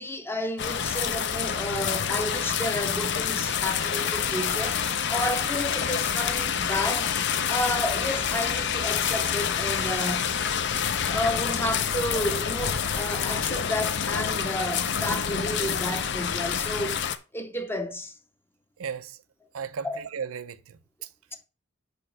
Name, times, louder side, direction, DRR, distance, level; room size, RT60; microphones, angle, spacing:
voice 1, 0.0-4.8 5.1-7.1 7.5-10.4 11.1-17.0 17.3-18.1 19.8-20.0, left 1 dB, 10° left, 0.6 m, -31 dB
sound 1, 0.6-17.2, left 7 dB, 55° left, 0.6 m, -27 dB
voice 2, 18.8-19.2 19.5-21.1, right 6 dB, 90° right, 0.6 m, -36 dB
5.1 x 4.9 x 6.0 m
head